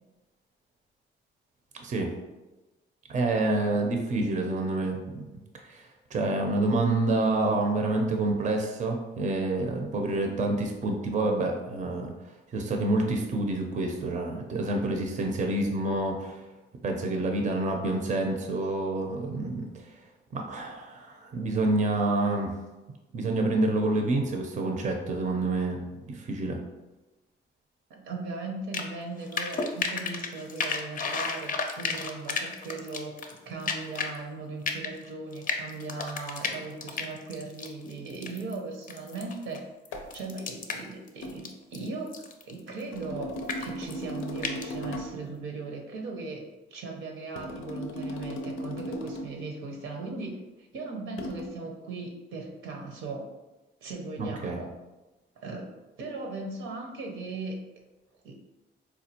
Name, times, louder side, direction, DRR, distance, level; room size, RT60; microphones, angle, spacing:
voice 1, 1.8-2.1 3.1-5.2 5.7-12.1 12.5-16.4 16.8-20.0 20.3-22.5 23.1-26.6 54.2-54.6, right 2 dB, 40° right, 2 dB, 0.5 m, -28 dB
voice 2, 27.9-33.2 33.4-53.3 53.8-54.7 55.4-55.7 56.0-57.6 58.2-58.3, right 3 dB, 80° right, 1 dB, 0.8 m, -38 dB
sound 1, 28.7-28.9 29.2-34.2 34.7-38.6 38.9-39.6 39.9-42.5 42.8-43.0 43.4-43.9 44.2-44.6, left 5 dB, 45° left, 0.5 m, -32 dB
sound 2, 39.9-40.2 41.2-41.4 42.9-45.3 47.4-49.4 51.2-51.5, equal, 90° left, 0.5 m, -37 dB
4.2 x 2.3 x 2.8 m, 1.1 s
cardioid pair, 90°, 20 cm